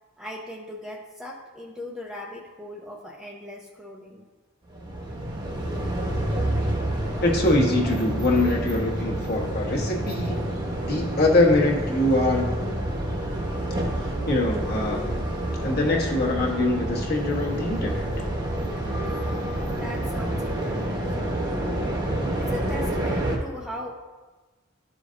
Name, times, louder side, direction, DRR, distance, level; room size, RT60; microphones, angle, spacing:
voice 1, 0.2-4.3 19.2-21.7 22.4-23.9, left 1 dB, ahead, -3 dB, 0.6 m, -39 dB
sound 1, 4.7-23.4, right 1 dB, 20° right, 1.1 m, -28 dB
voice 2, 7.2-10.6 10.8-12.5 14.0-15.2 15.6-18.1, left 2 dB, 50° left, -1 dB, 1.3 m, -23 dB
12.5 x 5.0 x 2.6 m, 1.2 s
head